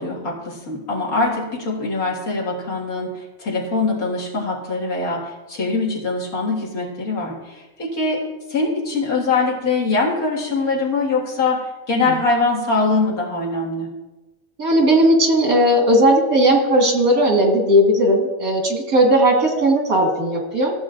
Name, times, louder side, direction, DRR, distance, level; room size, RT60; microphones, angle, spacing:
voice 1, 0.0-13.9, left 3 dB, 85° left, -3 dB, 2.4 m, -23 dB
voice 2, 14.6-20.7, right 1 dB, 80° right, 0 dB, 2.2 m, -16 dB
14.5 x 7.4 x 2.5 m, 1.1 s
omnidirectional pair, 1.5 m